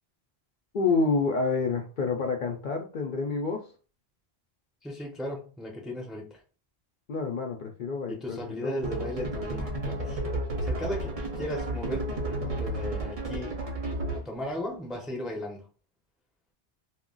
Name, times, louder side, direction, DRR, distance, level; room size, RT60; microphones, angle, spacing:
voice 1, 0.7-3.7 7.1-8.8, left 4 dB, 60° left, 0.6 m, -28 dB
voice 2, 4.8-6.4 8.1-10.2 10.6-13.6 14.1-15.7, equal, ahead, 0.5 m, -36 dB
sound 1, 8.8-14.4, right 1 dB, 40° right, 0.6 m, -32 dB
2.3 x 2.1 x 3.6 m
omnidirectional pair, 1.1 m